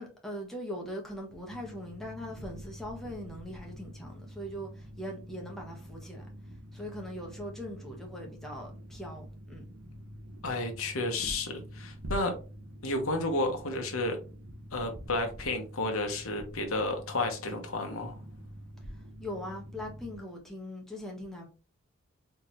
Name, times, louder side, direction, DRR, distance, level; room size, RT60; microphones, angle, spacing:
voice 1, 0.0-6.3 6.7-9.6 19.2-21.5, equal, ahead, 1.2 m, -41 dB
sound 1, 1.5-20.2, equal, 75° right, 1.0 m, -46 dB
voice 2, 10.4-12.3 12.8-14.2 14.7-18.2, left 2 dB, 70° left, 1.1 m, -31 dB
4.4 x 3.5 x 3.0 m
head